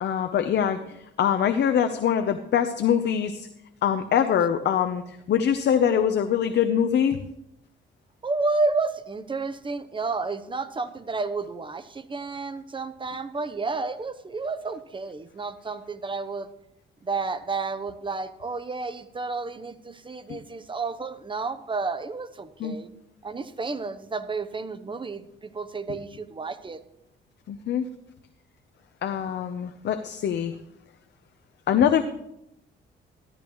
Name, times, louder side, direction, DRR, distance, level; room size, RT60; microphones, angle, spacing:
voice 1, 0.0-3.5 3.8-7.2 20.3-20.4 22.6-22.8 27.5-27.9 29.0-30.5 31.7-32.0, left 8 dB, 60° left, 7 dB, 0.8 m, -23 dB
voice 2, 8.2-16.5 17.0-22.9 23.2-26.8, right 3 dB, 25° right, 12 dB, 0.8 m, -31 dB
14.0 x 12.0 x 3.1 m, 0.81 s
cardioid pair, 90°, 20 cm